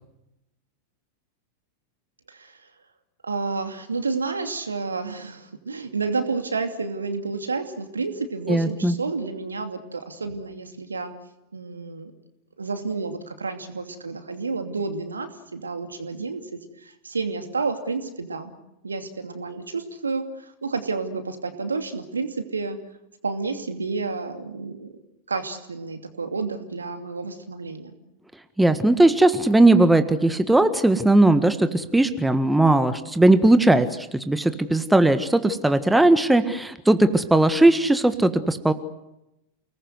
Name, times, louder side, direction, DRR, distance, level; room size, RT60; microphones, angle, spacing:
voice 1, 2.3-2.6 3.2-11.1 11.5-12.1 12.6-16.4 16.8-18.6 18.8-22.8 23.2-24.9 25.3-28.0, right 4 dB, 75° right, 7 dB, 2.7 m, -30 dB
voice 2, 8.5-8.9 28.6-38.7, right 2 dB, 5° right, 10 dB, 1.6 m, -18 dB
29.5 x 20.0 x 7.9 m, 0.89 s
figure-of-eight pair, 90°, 0 cm